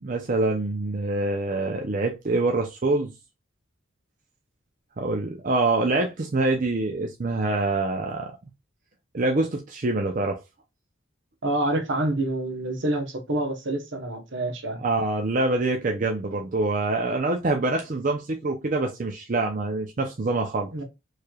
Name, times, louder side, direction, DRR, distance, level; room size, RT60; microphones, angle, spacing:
voice 1, 0.0-3.1 5.0-8.3 9.1-10.4 14.8-20.7, right 2 dB, 40° right, 0.5 m, -25 dB
voice 2, 11.4-14.8 20.7-20.8, right 1 dB, 65° right, 1.0 m, -27 dB
4.6 x 3.2 x 2.3 m
head